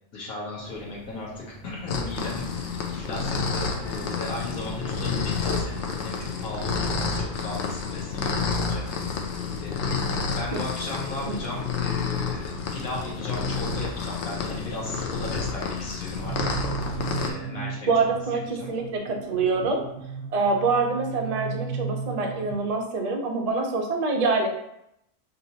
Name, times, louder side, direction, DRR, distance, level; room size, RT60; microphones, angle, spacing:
voice 1, 0.1-2.5 2.8-8.8 9.6-16.5 17.1-18.1 18.6-18.7, left 2 dB, 85° left, -5 dB, 1.4 m, -36 dB
sound 1, 0.6-5.8, right 1 dB, 40° left, 1.4 m, -44 dB
sound 2, 1.9-17.3, left 5 dB, 60° left, 0.8 m, -29 dB
sound 3, 16.1-22.7, right 6 dB, 85° right, 1.1 m, -35 dB
voice 2, 17.9-19.8 20.3-24.5, right 4 dB, 50° right, 2 dB, 0.4 m, -25 dB
5.4 x 2.7 x 2.8 m, 0.78 s
omnidirectional pair, 1.5 m